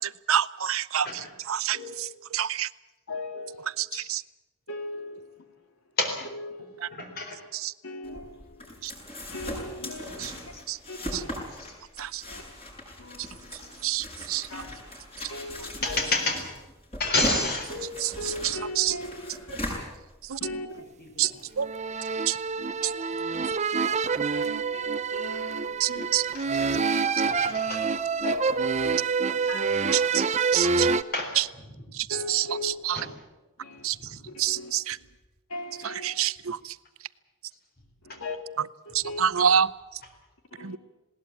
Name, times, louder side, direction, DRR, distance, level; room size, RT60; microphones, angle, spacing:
voice 1, 0.0-2.7 3.8-4.2 7.5-7.7 8.8-8.9 10.2-10.3 10.7-10.8 11.1-11.2 12.0-12.2 13.2-13.3 13.5-14.6 18.0-18.9 20.2-20.4 21.2-21.3 21.6-21.7 22.3-22.4 22.8-22.9 25.8-26.3 29.9-30.2 30.5-30.9 31.3-31.5 31.9-33.1 33.8-35.0 35.8-36.8 38.9-40.0 40.6-40.8, right 10 dB, 75° right, 17 dB, 0.6 m, -28 dB
voice 2, 3.1-3.7 4.7-5.6 6.3-6.9 7.8-10.5 10.9-11.5 12.3-12.4 13.0-13.5 14.5-14.7 15.3-16.0 17.7-19.8 20.4-20.7 22.8-22.9 24.1-26.0 27.2-27.4 28.2-29.1 29.3-30.1 30.6-30.8 32.1-32.8 33.6-33.9 34.3-34.7 35.5-36.1 38.0-38.4 38.9-39.2 40.6-40.8, left 2 dB, 75° left, 6 dB, 2.8 m, -39 dB
voice 3, 6.9-7.4 10.2-10.6 13.6-13.8 15.8-16.4 17.0-17.7 26.3-26.4 27.2-27.8 31.1-31.3 33.0-33.1, left 2 dB, 45° left, 4 dB, 4.0 m, -28 dB
sound 1, 8.0-20.5, left 1 dB, 30° left, 7.6 m, -39 dB
sound 2, 21.6-31.0, right 5 dB, 30° right, 0.7 m, -27 dB
20.0 x 18.5 x 8.5 m, 1.1 s
head